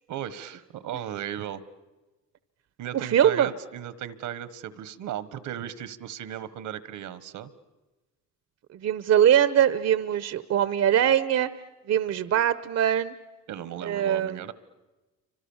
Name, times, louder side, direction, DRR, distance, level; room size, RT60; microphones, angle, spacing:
voice 1, 0.1-1.6 2.8-7.5 13.5-14.5, right 10 dB, 80° right, 17 dB, 1.4 m, -36 dB
voice 2, 2.9-3.5 8.7-11.5 11.9-13.1 13.8-14.4, right 10 dB, 60° right, 15 dB, 0.9 m, -22 dB
28.5 x 25.5 x 7.2 m, 1.1 s
cardioid pair, 90°, 30 cm